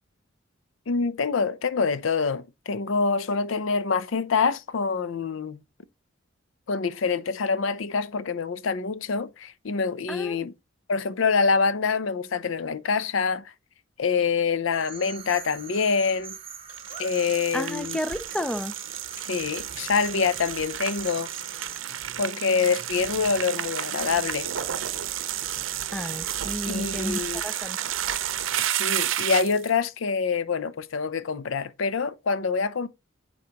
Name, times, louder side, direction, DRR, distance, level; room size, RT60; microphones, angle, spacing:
voice 1, 0.9-5.6 6.7-10.5 10.9-13.4 14.0-16.4 17.0-18.0 19.3-21.3 22.2-24.5 26.7-27.4 28.6-32.9, left 5 dB, 80° left, 0.5 m, -26 dB
voice 2, 10.1-10.4 17.5-18.7 25.9-27.8, left 1 dB, 5° left, 0.4 m, -32 dB
sound 1, 14.7-21.8, right 7 dB, 30° right, 1.0 m, -42 dB
sound 2, 16.7-29.7, right 11 dB, 85° right, 0.6 m, -31 dB
9.2 x 3.9 x 2.9 m
head